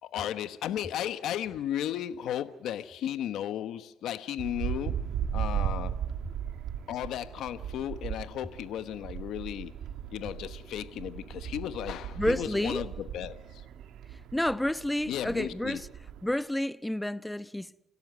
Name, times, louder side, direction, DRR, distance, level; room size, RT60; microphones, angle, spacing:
voice 1, 0.0-5.0 5.3-6.0 6.9-9.7 10.1-13.6 15.1-15.8, left 11 dB, 80° left, 1.1 m, -35 dB
sound 1, 4.4-16.3, right 9 dB, 80° right, 2.0 m, -37 dB
voice 2, 12.2-12.9 14.3-15.8 16.2-17.8, left 1 dB, 5° left, 0.9 m, -30 dB
30.0 x 16.5 x 9.4 m
cardioid pair, 90°, 0 cm